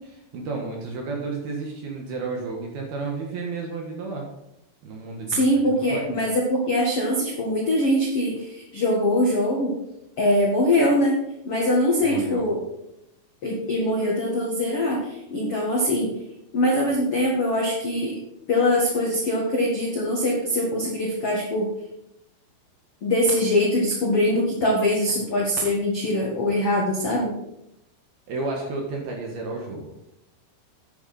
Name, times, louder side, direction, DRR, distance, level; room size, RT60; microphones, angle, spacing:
voice 1, 0.3-4.3 4.8-5.5 5.8-6.1 12.0-12.5 28.3-29.9, right 3 dB, 60° right, 0 dB, 2.8 m, -32 dB
voice 2, 5.3-9.7 10.2-11.1 11.4-12.6 13.4-16.1 16.5-18.1 18.5-21.7 23.0-27.3, left 1 dB, 70° left, -3 dB, 1.3 m, -22 dB
9.8 x 9.5 x 4.3 m, 0.85 s
omnidirectional pair, 5.9 m